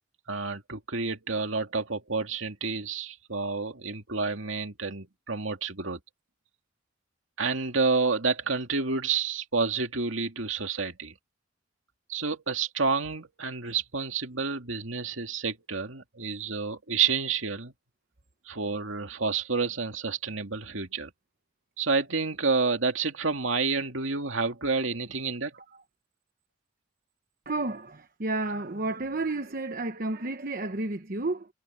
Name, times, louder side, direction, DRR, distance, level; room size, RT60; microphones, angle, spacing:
voice 1, 0.3-6.0 7.4-11.1 12.1-17.7 18.5-21.1 21.8-25.5, right 4 dB, 85° right, 2.3 m, -29 dB
voice 2, 27.5-31.5, right 2 dB, 50° right, 1.1 m, -31 dB
head